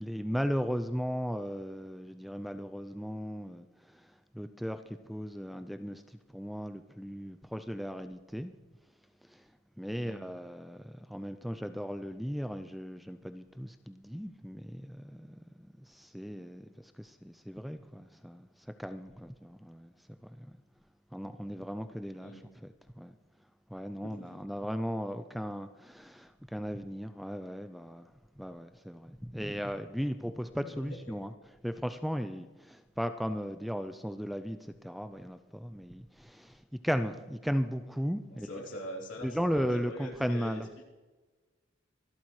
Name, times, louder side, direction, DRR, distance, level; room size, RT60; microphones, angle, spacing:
voice 1, 0.0-8.5 9.2-9.5 9.8-19.9 20.2-20.5 21.1-23.1 23.7-28.1 28.4-31.3 31.6-38.6 39.2-40.7, equal, ahead, 0.3 m, -36 dB
voice 2, 24.0-24.4 30.6-31.0 38.3-40.6, equal, 70° left, 3.1 m, -43 dB
24.5 x 8.5 x 3.1 m
head